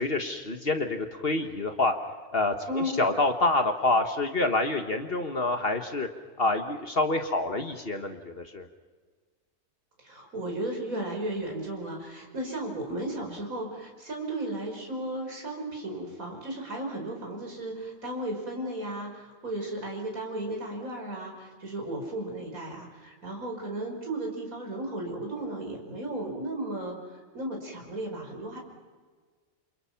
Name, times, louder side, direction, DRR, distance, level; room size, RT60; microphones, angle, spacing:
voice 1, 0.0-1.9 2.3-6.1 6.4-8.6, left 2 dB, 45° left, 6 dB, 1.6 m, -27 dB
voice 2, 2.7-3.0 10.0-27.0 27.3-28.6, right 1 dB, 85° right, 2 dB, 5.7 m, -35 dB
29.0 x 27.5 x 5.9 m, 1.5 s
omnidirectional pair, 1.4 m